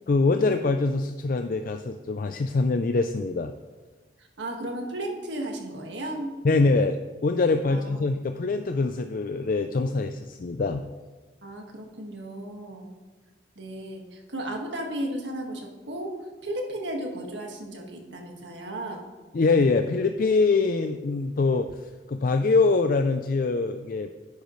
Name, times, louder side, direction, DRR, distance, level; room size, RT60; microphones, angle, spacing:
voice 1, 0.1-3.5 6.4-10.8 19.3-24.1, left 3 dB, 50° left, 7 dB, 0.4 m, -24 dB
voice 2, 4.2-6.3 7.7-8.0 11.4-13.0 13.6-19.1, right 1 dB, 80° right, 1 dB, 1.8 m, -35 dB
10.5 x 10.5 x 3.1 m, 1.3 s
head